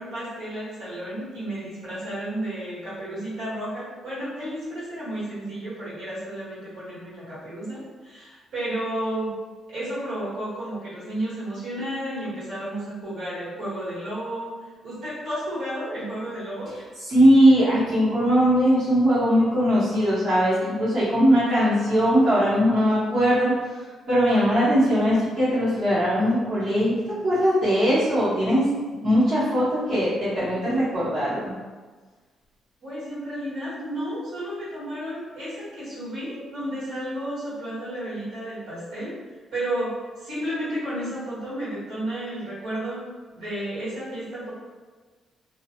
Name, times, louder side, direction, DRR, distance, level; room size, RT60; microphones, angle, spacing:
voice 1, 0.0-9.3 9.7-14.5 14.8-16.7 32.8-39.1 39.5-43.0 43.3-44.5, right 1 dB, 90° right, -10 dB, 1.5 m, -32 dB
voice 2, 17.1-23.5 24.1-28.6 29.0-31.5, equal, 55° right, -11 dB, 1.1 m, -20 dB
2.4 x 2.4 x 2.7 m, 1.4 s
cardioid pair, 90°, 0 cm